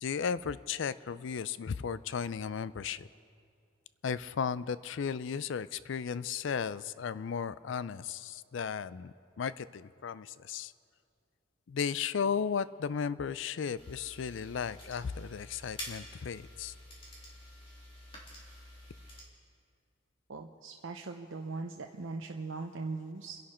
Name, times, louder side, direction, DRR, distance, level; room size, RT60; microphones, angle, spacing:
voice 1, 0.0-3.1 4.0-10.7 11.7-16.7, left 6 dB, 65° left, 17 dB, 0.4 m, -35 dB
sound 1, 13.8-19.2, left 1 dB, 30° left, 3.2 m, -48 dB
voice 2, 20.3-23.4, right 3 dB, 70° right, 3 dB, 0.7 m, -40 dB
30.0 x 11.0 x 4.4 m, 2.4 s
head